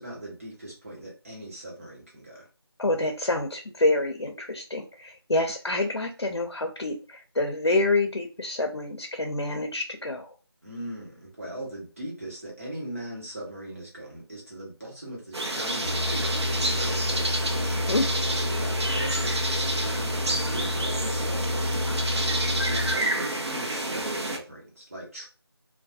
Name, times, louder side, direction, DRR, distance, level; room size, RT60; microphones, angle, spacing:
voice 1, 0.0-2.5 10.6-17.8 18.4-21.8 22.7-25.3, right 1 dB, 35° right, 0.9 m, -40 dB
voice 2, 2.8-10.3 17.9-18.1 20.4-20.6 21.8-22.2, left 2 dB, 90° left, 0.5 m, -27 dB
sound 1, 15.3-24.4, right 1 dB, 85° right, 0.7 m, -29 dB
sound 2, 15.8-22.9, left 2 dB, 15° left, 0.6 m, -29 dB
2.3 x 2.2 x 2.7 m
figure-of-eight pair, 170°, 14 cm